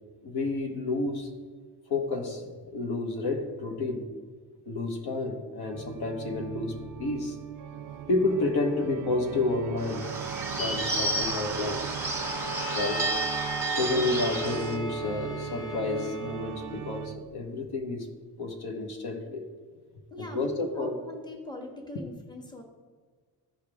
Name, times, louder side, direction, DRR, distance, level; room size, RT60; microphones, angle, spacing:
voice 1, 0.2-1.3 1.9-4.1 4.7-7.4 7.9-10.1 10.6-11.9 12.7-13.1 13.7-18.1 18.4-19.5 20.2-21.0, left 2 dB, 70° left, 3 dB, 1.4 m, -30 dB
Organ, 5.7-17.5, right 9 dB, 50° right, 0.4 m, -39 dB
Bird / Bell, 9.8-14.8, right 2 dB, 5° right, 1.5 m, -31 dB
Bowed string instrument, 12.0-16.6, equal, 35° left, 1.2 m, -38 dB
voice 2, 13.9-14.3 20.1-22.6, left 1 dB, 10° left, 1 dB, 1.3 m, -41 dB
14.5 x 5.1 x 3.6 m, 1.5 s
cardioid pair, 110°, 40 cm